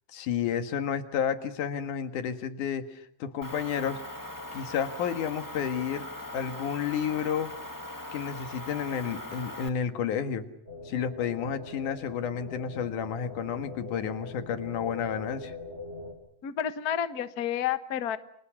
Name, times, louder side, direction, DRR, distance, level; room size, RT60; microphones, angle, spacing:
voice 1, 0.1-4.0 4.5-6.1 6.3-7.5 8.1-10.5 10.8-15.5, left 8 dB, 90° left, 9 dB, 3.2 m, -31 dB
Motor vehicle (road) / Engine, 3.4-9.7, left 1 dB, 10° left, 1.1 m, -40 dB
sound 1, 10.6-16.1, left 3 dB, 20° right, 6.6 m, -42 dB
voice 2, 16.4-18.2, left 9 dB, 50° left, 11 dB, 1.2 m, -30 dB
30.0 x 26.0 x 6.0 m, 0.65 s
omnidirectional pair, 3.5 m